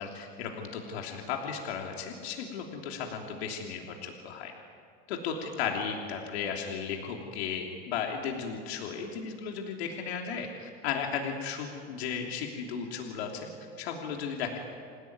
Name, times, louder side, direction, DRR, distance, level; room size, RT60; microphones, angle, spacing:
voice 1, 0.0-4.5 5.1-13.5 13.8-14.6, left 6 dB, 80° left, 1 dB, 3.2 m, -35 dB
27.5 x 16.5 x 9.5 m, 2.2 s
supercardioid pair, 150°, 31 cm